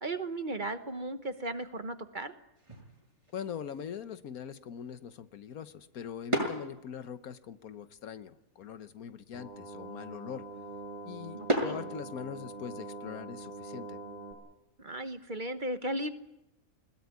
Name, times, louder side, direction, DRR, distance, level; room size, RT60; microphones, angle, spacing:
voice 1, 0.0-2.3 11.3-11.8 14.8-16.1, right 1 dB, 35° right, 9 dB, 1.2 m, -36 dB
sound 1, 2.5-12.6, equal, 20° right, 7.6 m, -39 dB
voice 2, 3.3-10.5 11.0-14.0, left 8 dB, 80° left, 12 dB, 1.5 m, -42 dB
sound 2, 9.3-14.3, right 2 dB, 30° left, 6.6 m, -44 dB
21.0 x 19.0 x 9.5 m, 0.90 s
omnidirectional pair, 1.5 m